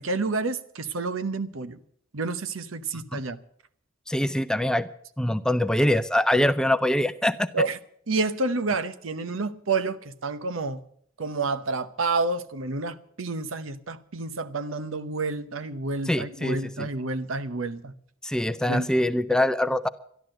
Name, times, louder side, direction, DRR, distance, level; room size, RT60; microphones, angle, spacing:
voice 1, 0.0-1.8 2.1-3.4 7.5-7.8 8.1-10.8 11.2-17.9 18.6-18.9, right 3 dB, 85° right, 0.9 m, -29 dB
voice 2, 4.1-4.9 5.2-7.7 16.1-16.9 18.2-19.9, left 1 dB, 5° left, 0.5 m, -24 dB
12.5 x 12.0 x 7.7 m
head